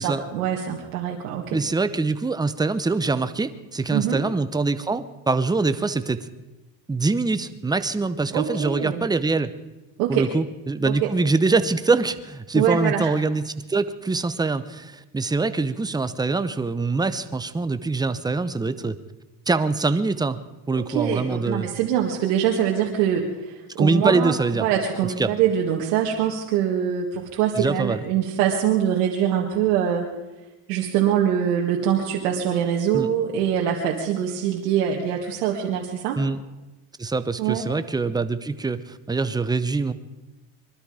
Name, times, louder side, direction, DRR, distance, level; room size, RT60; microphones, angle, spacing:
voice 1, 0.0-1.6 3.9-4.2 8.3-9.1 10.0-10.3 10.9-11.1 12.5-13.1 20.9-24.3 24.6-30.1 30.7-36.2 37.4-37.6, right 9 dB, 90° right, -1 dB, 1.9 m, -23 dB
voice 2, 1.5-6.3 6.9-9.5 10.1-19.0 19.5-20.4 20.7-21.7 23.8-24.7 25.2-25.3 27.6-28.0 32.9-33.1 36.2-36.4 37.0-39.9, right 3 dB, 10° right, 12 dB, 0.8 m, -24 dB
22.0 x 12.5 x 5.0 m, 1.1 s
supercardioid pair, 105°, 46 cm